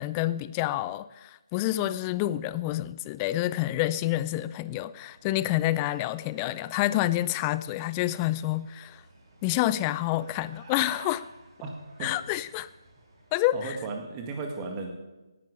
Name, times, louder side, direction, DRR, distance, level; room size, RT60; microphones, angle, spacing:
voice 1, 0.0-9.0 9.4-11.3 12.0-12.7 13.3-13.8, left 15 dB, 20° left, 0.3 m, -28 dB
sound 1, 4.9-13.5, right 2 dB, 40° right, 6.1 m, -53 dB
voice 2, 13.5-14.9, right 4 dB, 20° right, 2.0 m, -35 dB
17.5 x 11.0 x 4.9 m
figure-of-eight pair, 150°, 3 cm